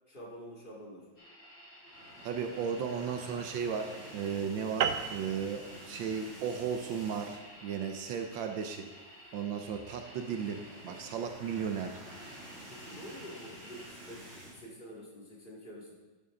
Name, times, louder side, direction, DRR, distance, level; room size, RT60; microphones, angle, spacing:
voice 1, 0.1-1.1 12.7-15.9, equal, 25° left, -4 dB, 2.7 m, -48 dB
sound 1, 1.2-13.9, equal, 75° left, 4.1 m, -53 dB
sound 2, 1.8-7.6 8.0-8.2 8.4-8.5 9.6-14.6, equal, 35° right, 4.3 m, -50 dB
voice 2, 2.2-8.9 9.3-12.0, right 7 dB, 85° right, 5 dB, 1.6 m, -35 dB
sound 3, 4.8-9.5, right 8 dB, 70° right, 1.1 m, -37 dB
12.5 x 9.2 x 3.9 m, 1.3 s
omnidirectional pair, 2.1 m